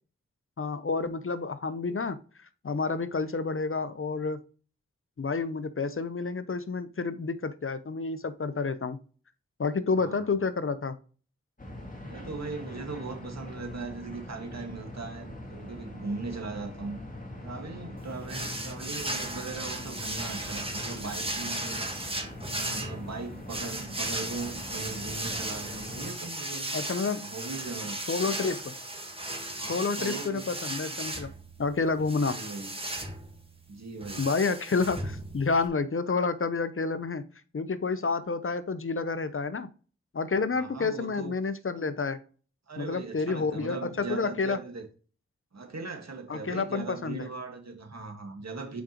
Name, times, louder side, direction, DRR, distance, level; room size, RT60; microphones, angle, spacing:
voice 1, 0.6-2.2 2.6-4.4 5.2-9.0 9.6-11.0 26.7-27.2 28.1-28.7 29.7-31.3 31.6-32.4 34.2-37.3 37.5-39.7 40.1-42.2 42.8-44.6 46.3-47.3, left 4 dB, 45° left, 0.8 m, -29 dB
sound 1, 11.6-26.1, left 1 dB, 30° left, 2.1 m, -42 dB
voice 2, 12.0-17.0 17.4-21.9 22.5-26.8 27.2-28.0 29.5-30.4 32.2-32.8 33.7-34.3 40.5-41.4 42.7-44.9 45.5-48.8, right 3 dB, 65° right, 2.0 m, -39 dB
sound 2, 18.3-35.7, right 1 dB, 20° right, 1.6 m, -36 dB
7.3 x 5.0 x 3.1 m
cardioid pair, 40°, 29 cm